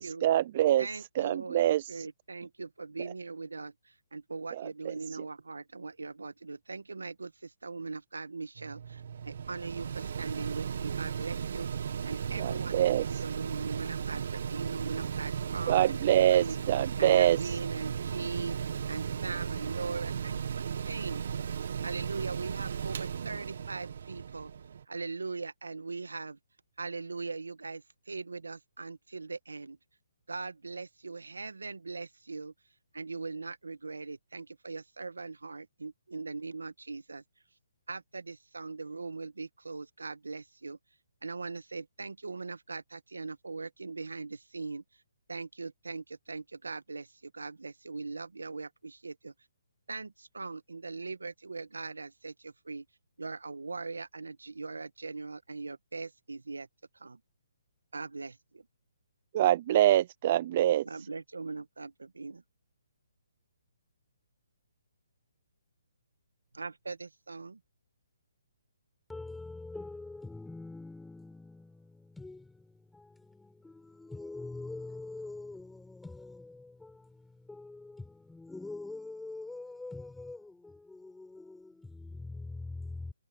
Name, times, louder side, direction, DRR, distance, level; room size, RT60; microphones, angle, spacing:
voice 1, 0.0-0.9 1.2-1.9 12.4-13.0 15.7-17.4 59.3-60.8, right 12 dB, 40° right, 0.6 m, -25 dB
voice 2, 0.8-16.6 17.0-21.2 21.8-24.5 24.9-26.4 26.8-29.8 30.3-32.5 32.9-37.2 37.9-40.8 41.2-44.8 45.3-49.3 49.9-52.8 53.2-56.7 56.9-57.2 57.9-58.7 60.8-62.4 66.5-67.6, right 4 dB, 85° right, 1.6 m, -40 dB
Mechanical fan, 8.6-24.8, right 7 dB, 60° right, 1.7 m, -36 dB
voice 3, 69.1-71.4 72.2-72.3 74.1-75.6 78.5-80.4, left 2 dB, 5° left, 4.6 m, -42 dB
hypercardioid pair, 145°, 0 cm